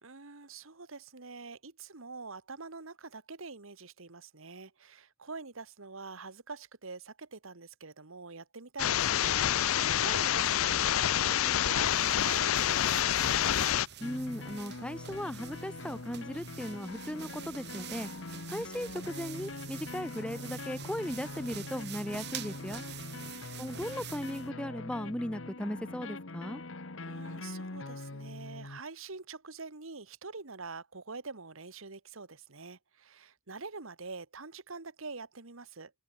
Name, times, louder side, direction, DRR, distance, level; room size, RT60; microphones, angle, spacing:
voice 1, 0.0-13.3 23.0-23.5 27.0-35.9, right 4 dB, 70° right, 1.7 m, -45 dB
sound 1, 8.8-13.9, left 11 dB, 80° left, 0.5 m, -27 dB
sound 2, 11.9-24.5, right 10 dB, 50° right, 2.3 m, -47 dB
sound 3, 14.0-28.8, left 2 dB, 65° left, 1.4 m, -43 dB
voice 2, 14.0-18.1 18.5-22.8 23.6-26.6, equal, 5° left, 0.7 m, -37 dB
open air
head